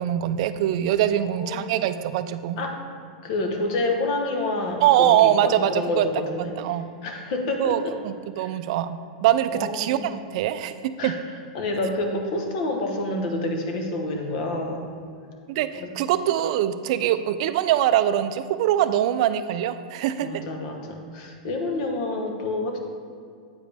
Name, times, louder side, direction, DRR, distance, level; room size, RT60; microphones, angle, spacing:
voice 1, 0.0-2.6 4.8-6.1 6.4-6.9 7.6-10.8 11.0-11.1 15.5-20.3, right 11 dB, 55° right, 11 dB, 0.3 m, -23 dB
voice 2, 1.3-1.7 2.6-2.8 3.2-6.6 7.0-8.0 8.4-8.5 9.5-10.1 11.0-11.2 11.5-14.9 15.8-15.9 17.0-17.1 20.2-22.8, left 2 dB, 50° left, 3 dB, 1.0 m, -28 dB
8.6 x 5.0 x 3.4 m, 2.3 s
supercardioid pair, 155°, 4 cm